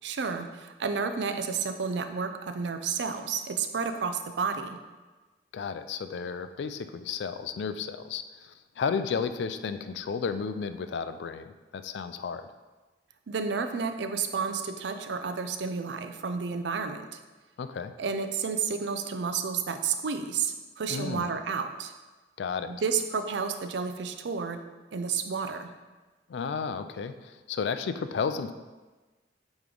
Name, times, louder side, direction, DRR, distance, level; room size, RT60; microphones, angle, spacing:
voice 1, 0.0-4.8 13.3-17.1 18.0-21.9 22.7-24.6 24.9-25.7, right 5 dB, 70° right, 8 dB, 0.5 m, -31 dB
voice 2, 5.5-12.4 17.6-17.9 20.9-21.3 22.4-22.7 26.3-28.5, left 5 dB, 70° left, 10 dB, 0.3 m, -33 dB
8.3 x 3.1 x 3.8 m, 1.2 s
head